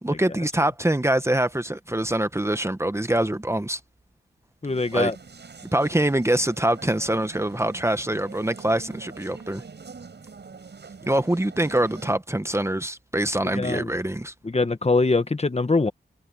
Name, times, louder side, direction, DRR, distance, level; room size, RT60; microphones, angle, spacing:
voice 1, 0.0-3.8 4.9-5.1 5.7-9.6 11.1-14.3, right 1 dB, 15° right, 1.2 m, -24 dB
voice 2, 4.6-5.1 13.5-13.9 14.5-15.9, left 3 dB, 35° left, 1.5 m, -22 dB
sound 1, 4.6-12.2, right 5 dB, 65° right, 7.6 m, -44 dB
cardioid pair, 45°, 19 cm